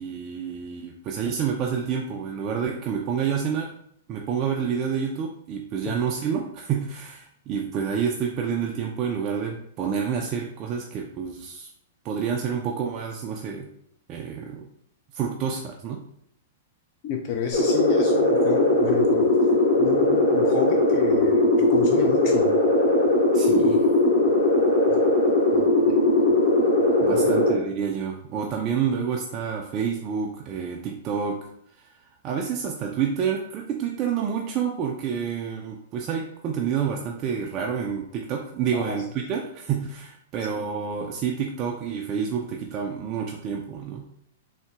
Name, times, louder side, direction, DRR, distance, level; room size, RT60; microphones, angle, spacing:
voice 1, 0.0-3.7 4.1-11.7 12.0-13.7 14.1-14.7 15.1-16.0 23.3-23.9 27.0-31.4 31.8-31.9 32.2-44.1, right 7 dB, 35° right, 0 dB, 0.3 m, -28 dB
voice 2, 17.0-19.3 19.8-22.6 24.9-25.0 25.5-26.0 27.1-27.5 38.7-39.0 40.4-40.5, left 6 dB, 45° left, 2 dB, 0.3 m, -31 dB
sound 1, 17.5-27.5, left 1 dB, 60° left, 0.9 m, -19 dB
3.7 x 2.0 x 2.4 m, 0.69 s
figure-of-eight pair, 105°, 0 cm